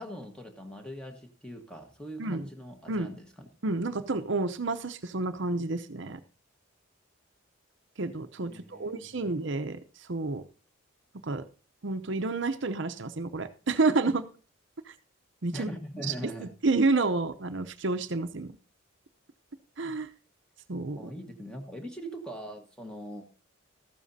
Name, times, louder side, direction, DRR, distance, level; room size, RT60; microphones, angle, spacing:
voice 1, 0.0-3.5 8.5-9.3 15.5-16.5 21.0-23.2, equal, 5° left, 5 dB, 1.4 m, -41 dB
voice 2, 3.6-6.2 8.0-9.8 10.1-10.4 11.2-11.4 11.8-14.3 14.9-15.0 15.4-15.7 16.0-16.1 16.4-18.5 19.8-20.1 20.7-21.0, right 3 dB, 60° right, 9 dB, 0.7 m, -29 dB
14.0 x 12.5 x 2.7 m, 0.35 s
head